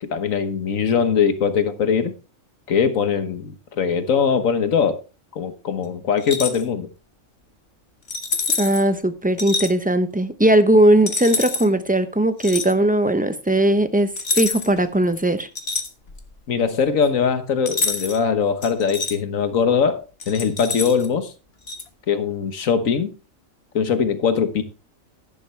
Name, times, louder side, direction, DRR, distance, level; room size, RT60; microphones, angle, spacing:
voice 1, 0.0-2.1 2.7-5.0 5.3-6.9 16.5-21.3 22.1-23.1 23.7-24.6, left 6 dB, 80° left, 1.6 m, -21 dB
sound 1, 6.2-6.6 8.1-8.8 9.4-9.7 11.1-11.7 12.4-12.7 14.2-14.8 15.1-16.3 17.7-18.2 18.6-19.1 20.2-21.1 21.7-21.8, left 4 dB, 50° left, 1.6 m, -26 dB
voice 2, 8.6-14.1 14.3-15.5, right 1 dB, 10° right, 0.7 m, -18 dB
11.0 x 11.0 x 3.3 m
omnidirectional pair, 1.4 m